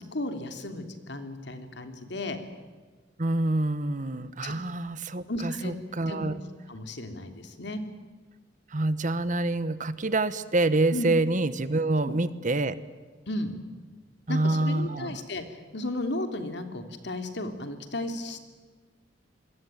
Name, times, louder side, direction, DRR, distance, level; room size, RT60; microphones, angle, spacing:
voice 1, 0.1-2.4 4.4-4.5 5.3-5.7 6.1-6.3 6.7-7.8 10.9-11.1 12.0-12.1 13.3-13.5 14.3-18.4, left 2 dB, 65° left, 7 dB, 3.1 m, -34 dB
voice 2, 3.2-6.4 8.7-12.8 14.3-15.2, right 2 dB, 45° right, 14 dB, 1.2 m, -27 dB
27.0 x 21.5 x 9.2 m, 1.4 s
head